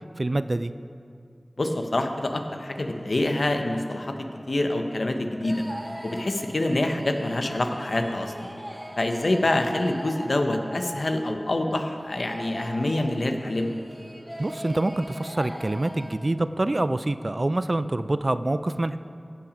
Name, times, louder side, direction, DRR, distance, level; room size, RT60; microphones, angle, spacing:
voice 1, 0.2-0.7 14.4-19.0, right 2 dB, 45° right, 12 dB, 0.3 m, -26 dB
voice 2, 1.6-4.1 4.5-5.6 6.0-8.5 9.0-13.7, left 1 dB, 70° left, 5 dB, 0.8 m, -26 dB
sound 1, 2.5-16.1, equal, 25° right, 2.0 m, -41 dB
15.0 x 5.9 x 5.1 m, 2.4 s
wide cardioid pair, 45°, 0 cm